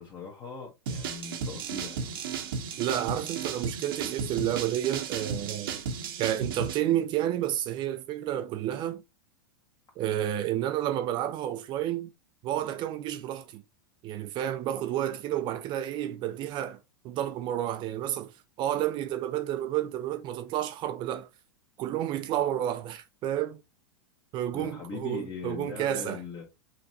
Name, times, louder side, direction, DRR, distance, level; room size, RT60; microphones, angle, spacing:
voice 1, 0.0-2.2 24.5-26.4, left 5 dB, 30° left, 1.3 m, -40 dB
sound 1, 0.9-6.8, right 6 dB, 65° right, 0.9 m, -34 dB
voice 2, 2.8-5.8 6.2-9.0 10.0-12.1 12.4-13.6 14.0-16.8 17.0-21.3 21.8-23.6 24.3-26.2, right 12 dB, 40° right, 0.5 m, -30 dB
5.7 x 3.1 x 2.7 m
hypercardioid pair, 100°, 12 cm